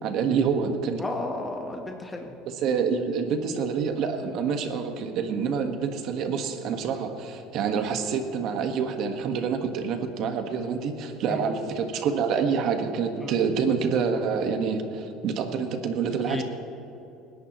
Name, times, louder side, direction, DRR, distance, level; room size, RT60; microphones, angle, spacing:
voice 1, 0.0-1.0 2.5-16.4, right 6 dB, 60° right, 5 dB, 1.5 m, -27 dB
voice 2, 1.0-2.3 11.3-11.5 13.2-13.4 16.3-16.4, left 2 dB, 15° left, 2 dB, 1.2 m, -33 dB
28.0 x 11.0 x 3.1 m, 2.9 s
cardioid pair, 120°, 0 cm